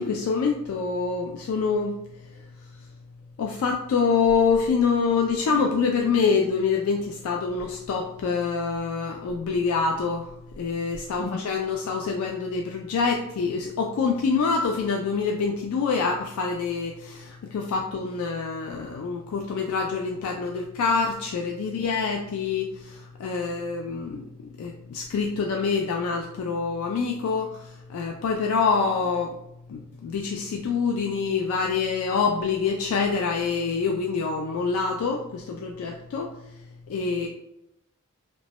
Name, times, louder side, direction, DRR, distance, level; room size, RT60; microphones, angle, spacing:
voice 1, 0.0-2.0 3.4-24.2 24.6-29.3 29.7-36.3 36.9-37.3, left 5 dB, 80° left, 2 dB, 0.3 m, -26 dB
2.9 x 2.2 x 2.8 m, 0.83 s
head